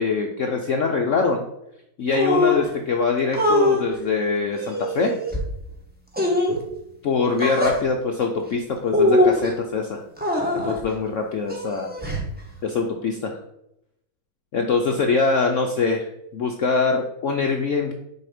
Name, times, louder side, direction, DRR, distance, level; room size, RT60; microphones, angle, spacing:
voice 1, 0.0-1.4 2.0-5.1 7.0-10.0 10.5-11.9 12.6-13.4 14.5-16.1 16.3-17.9, left 4 dB, 75° left, 3 dB, 0.7 m, -23 dB
sound 1, 2.1-2.7 3.3-3.8 4.5-5.4 6.1-6.6 7.4-7.8 8.9-9.5 10.2-10.8 11.5-12.3, left 1 dB, 5° right, 0.8 m, -21 dB
6.8 x 4.0 x 5.0 m, 0.80 s
omnidirectional pair, 2.1 m